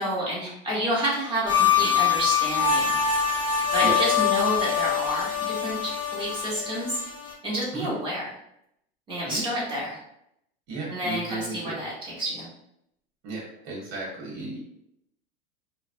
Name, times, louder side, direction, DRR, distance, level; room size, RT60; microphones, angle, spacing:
voice 1, 0.0-3.0 3.7-7.0 7.4-8.3 9.1-10.0 10.9-12.5, equal, 15° right, -7 dB, 1.1 m, -29 dB
sound 1, 1.5-7.3, left 7 dB, 15° left, 0.5 m, -24 dB
voice 2, 10.7-11.8 13.2-14.6, right 3 dB, 65° right, -4 dB, 1.2 m, -34 dB
2.4 x 2.1 x 2.5 m, 0.76 s
supercardioid pair, 130°, 32 cm